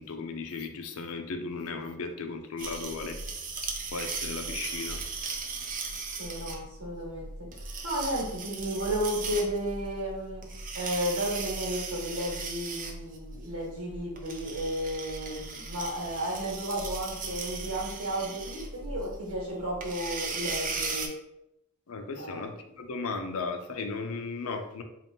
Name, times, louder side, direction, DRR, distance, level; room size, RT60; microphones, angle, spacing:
voice 1, 0.0-3.2 3.6-5.0 21.9-24.8, left 4 dB, 75° left, 5 dB, 0.5 m, -36 dB
sound 1, 2.6-21.1, right 4 dB, 40° right, 0.6 m, -37 dB
voice 2, 6.2-7.3 7.8-10.4 10.7-21.1 22.2-22.5, equal, 80° right, -4 dB, 1.2 m, -33 dB
4.0 x 2.4 x 3.4 m, 0.85 s
head